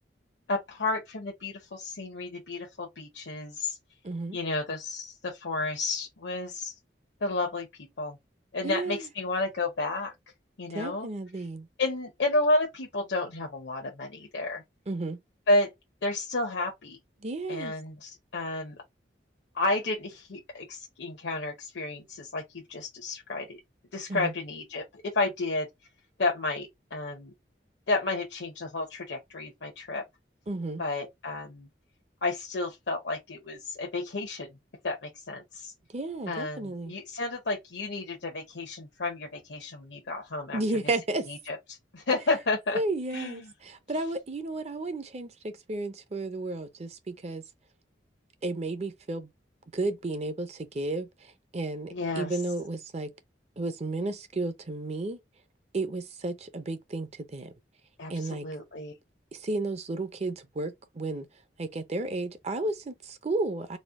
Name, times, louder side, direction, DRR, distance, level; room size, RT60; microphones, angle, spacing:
voice 1, 0.5-3.8 4.3-6.7 7.2-7.7 8.0-8.2 8.5-10.1 10.6-11.1 11.8-14.6 15.5-15.7 16.0-17.0 17.5-18.8 19.5-23.6 23.9-24.9 25.1-25.7 26.2-27.3 27.9-30.0 30.8-31.7 32.2-34.5 34.8-35.7 36.3-40.6 41.3-42.8 43.1-43.5 51.9-52.3 58.0-58.9, left 2 dB, 70° left, 0.8 m, -31 dB
voice 2, 4.0-4.4 8.6-9.1 10.7-11.7 14.9-15.2 17.2-17.7 24.1-24.3 30.5-30.8 35.9-36.9 40.5-41.3 42.7-47.4 48.4-49.3 49.7-53.1 53.6-55.2 55.7-57.5 58.1-58.5 59.3-61.3 61.6-63.8, right 2 dB, 35° right, 0.6 m, -33 dB
4.1 x 2.2 x 3.6 m
head